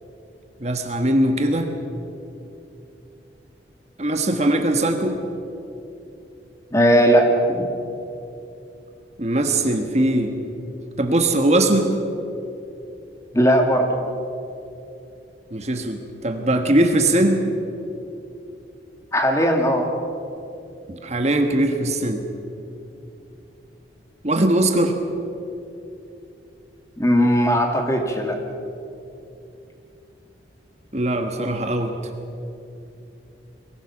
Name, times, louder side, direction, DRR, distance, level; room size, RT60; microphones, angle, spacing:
voice 1, 0.6-1.7 4.0-5.2 9.2-10.3 11.0-12.0 15.5-17.4 20.9-22.2 24.2-24.9 30.9-31.9, right 1 dB, 35° right, 5 dB, 1.4 m, -20 dB
voice 2, 6.7-7.7 13.3-13.9 19.1-19.9 27.0-28.4, equal, 15° left, 3 dB, 2.0 m, -18 dB
23.0 x 15.5 x 7.3 m, 2.8 s
head